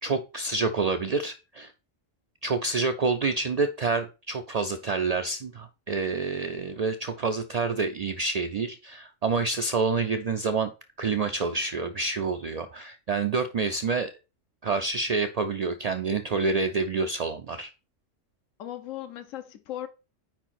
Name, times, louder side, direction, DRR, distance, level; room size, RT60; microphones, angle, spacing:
voice 1, 0.0-1.7 2.4-10.7 11.0-14.1 14.6-17.7, right 4 dB, 70° right, 0.3 m, -28 dB
voice 2, 18.6-19.9, left 12 dB, 90° left, 1.1 m, -37 dB
4.9 x 4.5 x 5.7 m
omnidirectional pair, 1.3 m